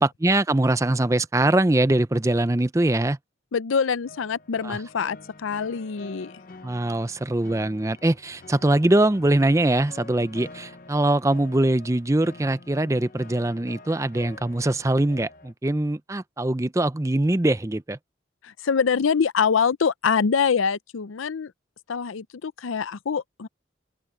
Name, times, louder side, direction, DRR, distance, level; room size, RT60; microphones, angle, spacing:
voice 1, 0.0-3.2 4.6-4.8 6.6-18.0, right 1 dB, 15° right, 0.5 m, -22 dB
voice 2, 3.5-6.3 18.4-21.5 21.9-23.5, left 6 dB, 90° left, 0.5 m, -24 dB
sound 1, 4.0-15.5, left 2 dB, 45° left, 0.7 m, -47 dB
open air
head